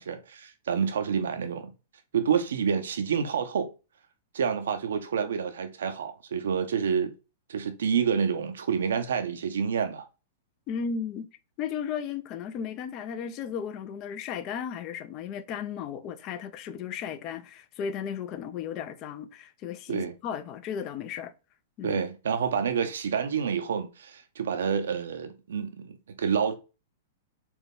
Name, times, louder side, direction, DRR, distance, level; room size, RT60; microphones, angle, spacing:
voice 1, 0.0-1.7 2.1-3.7 4.3-7.1 7.5-10.1 19.9-20.1 21.8-26.5, right 7 dB, 80° right, 0.6 m, -28 dB
voice 2, 10.7-11.3 11.6-21.3 21.8-22.0, left 7 dB, 40° left, 0.5 m, -35 dB
4.3 x 2.3 x 3.5 m
hypercardioid pair, 125°, 0 cm